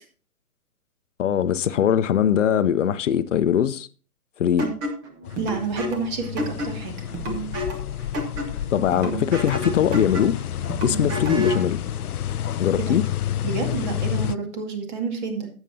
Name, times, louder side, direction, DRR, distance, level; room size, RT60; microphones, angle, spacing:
voice 1, 1.2-3.9 4.4-4.6 8.7-10.4 10.8-11.8 12.6-13.0, left 9 dB, 55° left, 0.7 m, -21 dB
sound 1, 4.6-11.7, equal, 10° right, 0.7 m, -30 dB
sound 2, 5.2-14.3, left 11 dB, 90° left, 0.5 m, -30 dB
voice 2, 5.4-7.0 12.9-13.0 13.4-15.5, right 4 dB, 30° right, 2.1 m, -29 dB
12.0 x 8.2 x 2.7 m
hypercardioid pair, 145°, 44 cm